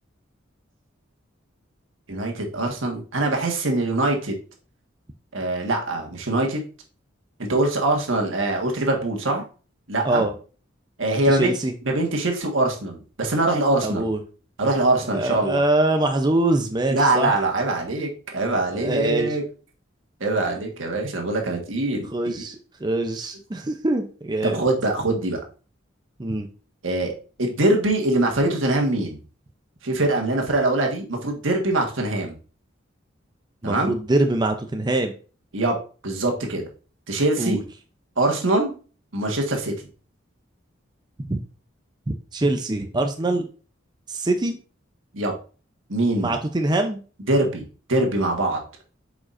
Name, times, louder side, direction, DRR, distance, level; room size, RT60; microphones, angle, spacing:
voice 1, 2.1-4.4 5.3-6.6 7.4-9.4 9.9-10.2 11.0-11.5 11.8-14.1 14.6-15.6 16.9-19.4 20.2-22.4 24.4-25.4 26.8-27.1 27.4-29.2 29.8-32.3 33.6-33.9 35.5-35.8 36.0-36.6 37.1-37.6 38.2-38.7 39.1-39.7 45.1-45.3 45.9-46.3 47.3-47.6 47.9-48.6, right 2 dB, 85° right, 1 dB, 1.5 m, -23 dB
voice 2, 11.3-11.7 13.8-14.2 15.0-17.4 18.7-19.4 22.1-24.7 26.2-26.5 33.6-35.1 37.4-37.6 41.3-41.4 42.3-43.5 44.1-44.6 46.2-47.0, right 2 dB, 20° right, 5 dB, 0.5 m, -23 dB
8.3 x 4.9 x 2.5 m, 0.37 s
head